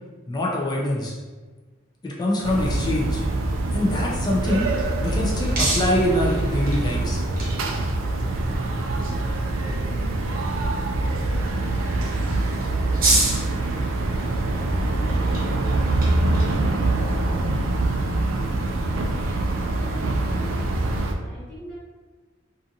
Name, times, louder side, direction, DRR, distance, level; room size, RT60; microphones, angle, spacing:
voice 1, 0.3-1.1 2.0-3.2 3.7-7.2, left 1 dB, 20° left, -3 dB, 0.4 m, -24 dB
sound 1, 2.4-21.1, right 2 dB, 75° right, 0.3 m, -24 dB
sound 2, 4.2-18.7, right 2 dB, 50° right, 0.8 m, -32 dB
voice 2, 19.0-21.7, left 1 dB, 5° left, -12 dB, 1.1 m, -43 dB
2.5 x 2.5 x 2.7 m, 1.4 s
head